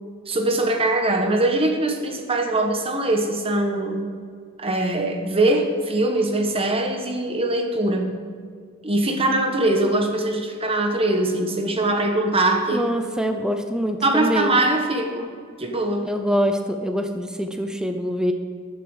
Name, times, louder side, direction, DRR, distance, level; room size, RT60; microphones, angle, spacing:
voice 1, 0.3-4.0 4.6-8.1 8.8-12.8 14.0-15.3 15.6-16.1, right 2 dB, 25° right, 4 dB, 1.3 m, -22 dB
voice 2, 12.7-14.6 16.0-18.3, equal, 5° right, 6 dB, 0.7 m, -24 dB
13.5 x 9.1 x 5.0 m, 2.1 s
head